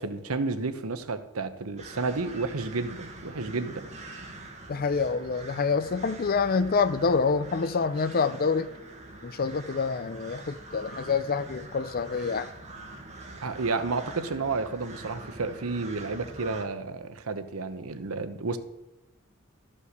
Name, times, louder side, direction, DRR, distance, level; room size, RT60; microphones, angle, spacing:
voice 1, 0.0-3.9 13.4-18.6, right 3 dB, 90° right, 0.9 m, -31 dB
sound 1, 1.8-16.7, right 2 dB, 35° right, 1.4 m, -45 dB
voice 2, 4.7-8.7 9.2-12.5, left 5 dB, 45° left, 0.5 m, -27 dB
13.0 x 5.5 x 6.6 m
head